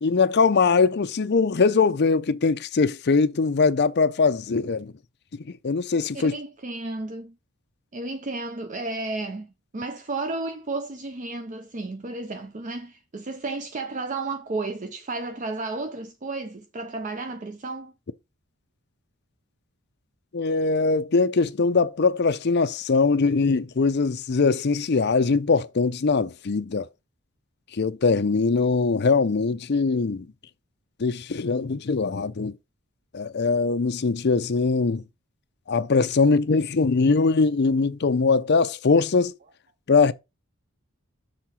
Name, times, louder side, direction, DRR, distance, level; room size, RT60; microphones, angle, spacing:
voice 1, 0.0-4.9 5.4-6.3 20.3-26.9 27.7-30.3 31.0-32.5 33.1-35.0 35.7-39.3 39.9-40.1, left 4 dB, 50° left, 0.5 m, -22 dB
voice 2, 6.1-7.3 7.9-17.9, right 3 dB, 35° right, 0.5 m, -33 dB
6.5 x 3.7 x 5.7 m
head